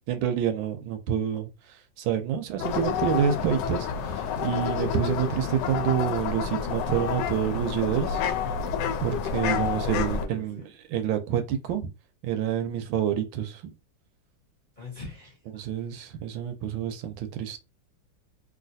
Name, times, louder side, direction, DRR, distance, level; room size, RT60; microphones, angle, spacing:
voice 1, 0.1-8.2 9.0-10.6 10.9-11.9 12.2-13.7 15.5-17.6, right 9 dB, 80° right, 1.4 m, -28 dB
sound 1, 2.6-10.3, left 6 dB, 75° left, 1.1 m, -29 dB
voice 2, 9.4-10.7 14.8-15.6, left 3 dB, 35° left, 0.8 m, -42 dB
3.2 x 2.7 x 2.6 m
omnidirectional pair, 2.2 m